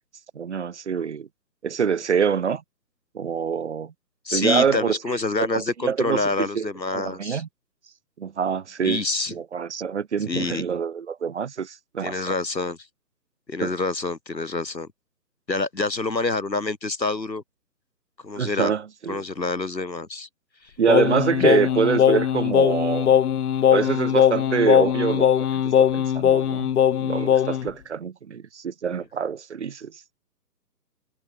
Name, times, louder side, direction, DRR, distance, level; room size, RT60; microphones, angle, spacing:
voice 1, 0.3-1.3 1.6-2.6 3.1-3.9 4.3-5.2 5.5-6.3 6.5-7.5 8.2-9.0 9.3-12.3 13.6-13.7 18.4-19.2 20.8-23.1 23.7-26.7 27.0-29.9, right 6 dB, 45° right, 1.6 m, -25 dB
voice 2, 4.2-7.4 8.8-9.3 10.3-10.6 12.0-12.8 13.5-14.9 15.5-17.4 18.2-18.7 19.1-20.3 21.4-21.6, left 3 dB, 85° left, 4.6 m, -27 dB
Singing, 20.9-27.7, left 9 dB, 65° left, 0.5 m, -20 dB
figure-of-eight pair, 150°, 50 cm